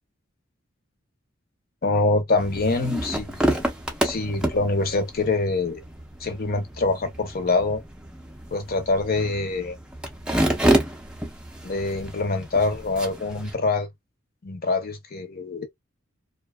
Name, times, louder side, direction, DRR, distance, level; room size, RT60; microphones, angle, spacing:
voice 1, 1.8-3.7 4.0-5.8 6.2-7.8 8.5-9.8 11.6-13.9 14.4-15.7, left 3 dB, 50° left, 0.8 m, -25 dB
sound 1, 2.4-13.5, right 1 dB, 5° right, 0.5 m, -29 dB
2.7 x 2.3 x 2.2 m
head